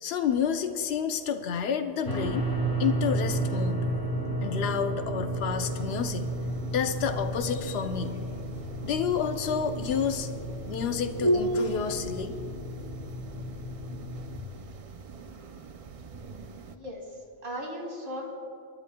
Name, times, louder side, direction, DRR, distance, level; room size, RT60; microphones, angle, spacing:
voice 1, 0.0-2.5 2.8-3.8 4.4-6.3 6.7-8.1 8.8-10.3 10.6-12.3, left 7 dB, 70° left, 7 dB, 1.0 m, -29 dB
sound 1, 2.1-14.4, right 1 dB, 50° left, 1.3 m, -33 dB
sound 2, 5.6-16.8, right 1 dB, 45° right, 0.5 m, -36 dB
voice 2, 16.7-18.4, equal, 65° right, 0 dB, 2.3 m, -37 dB
29.0 x 10.5 x 2.2 m, 2.5 s
omnidirectional pair, 1.1 m